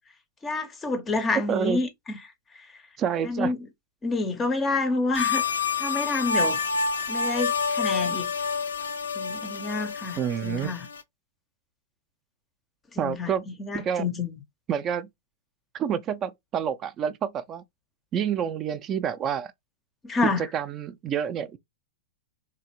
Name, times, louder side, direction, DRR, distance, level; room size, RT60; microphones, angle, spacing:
voice 1, 0.4-2.2 2.5-2.7 3.2-3.6 4.0-5.4 5.8-6.6 7.1-8.3 9.2-10.9 12.9-13.3 13.6-14.3 20.0-20.5, left 3 dB, 20° left, 0.5 m, -28 dB
voice 2, 1.5-1.8 3.0-3.5 10.2-10.7 13.0-13.5 13.7-14.0 14.7-15.1 15.7-17.6 18.1-19.5 20.2-21.6, right 8 dB, 30° right, 0.4 m, -28 dB
sound 1, 5.1-11.0, left 5 dB, 80° left, 0.3 m, -28 dB
3.3 x 2.5 x 2.9 m
figure-of-eight pair, 100°, 0 cm